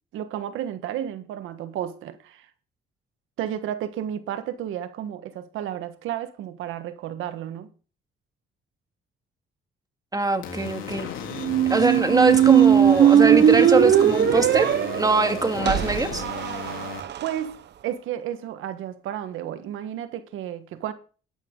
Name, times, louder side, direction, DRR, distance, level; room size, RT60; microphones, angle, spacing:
voice 1, 0.1-2.5 3.4-7.7 17.2-20.9, right 10 dB, 90° right, 1.5 m, -32 dB
voice 2, 10.1-11.1 11.7-16.2, right 2 dB, 20° right, 2.3 m, -22 dB
sound 1, 10.4-17.0, left 7 dB, 90° left, 3.6 m, -35 dB
Squeak, 11.4-17.3, right 10 dB, 60° right, 0.9 m, -19 dB
12.5 x 11.5 x 3.9 m
cardioid pair, 90°, 20 cm